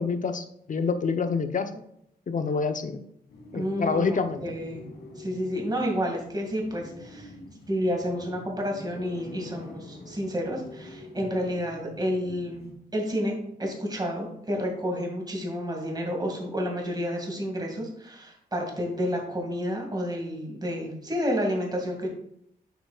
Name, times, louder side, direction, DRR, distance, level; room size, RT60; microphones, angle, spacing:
voice 1, 0.0-1.8 2.3-3.0 3.5-4.4, left 5 dB, 50° left, 8 dB, 0.9 m, -27 dB
sound 1, 3.3-12.7, left 2 dB, 85° left, 2.3 m, -46 dB
voice 2, 3.5-4.8 5.2-7.3 7.7-22.1, equal, 25° right, 0 dB, 2.3 m, -30 dB
9.0 x 6.9 x 2.5 m, 0.74 s
cardioid pair, 70°, 17 cm